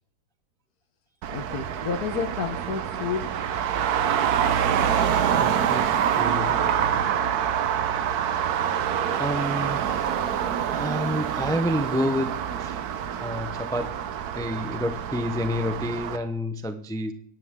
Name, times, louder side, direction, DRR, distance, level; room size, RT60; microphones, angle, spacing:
Traffic noise roadway noise, 1.2-16.2, right 9 dB, 75° right, 1.3 m, -26 dB
voice 1, 1.3-3.3, left 6 dB, 75° left, 4 dB, 1.7 m, -30 dB
voice 2, 5.3-6.8 9.2-10.1 10.7-12.8 13.2-13.9 14.3-17.1, equal, 5° left, 9 dB, 0.5 m, -29 dB
25.0 x 10.5 x 3.7 m, 0.66 s
omnidirectional pair, 1.7 m